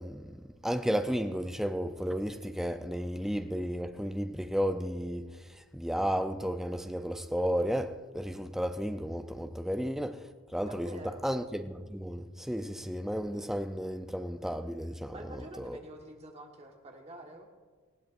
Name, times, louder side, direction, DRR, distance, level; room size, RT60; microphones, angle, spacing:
voice 1, 0.0-5.2 5.5-10.2 10.5-10.9 11.2-15.8, equal, ahead, 0.4 m, -33 dB
voice 2, 10.6-11.2 15.1-17.5, right 1 dB, 30° right, 1.4 m, -47 dB
19.5 x 15.5 x 2.5 m
head